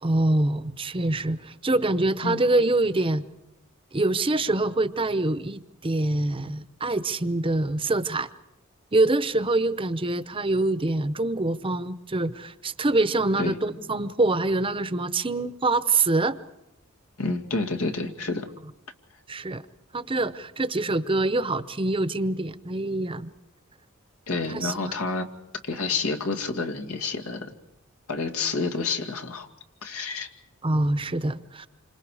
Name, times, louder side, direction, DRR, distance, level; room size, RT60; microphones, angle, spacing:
voice 1, 0.0-3.2 3.9-8.3 8.9-16.4 19.3-19.6 19.9-23.3 24.5-24.9 30.6-31.7, right 2 dB, 25° right, 12 dB, 0.8 m, -25 dB
voice 2, 17.2-18.5 24.3-25.3 25.6-27.5 28.1-29.5 29.8-30.3, left 3 dB, 85° left, 5 dB, 2.2 m, -29 dB
28.5 x 26.0 x 4.9 m, 0.89 s
head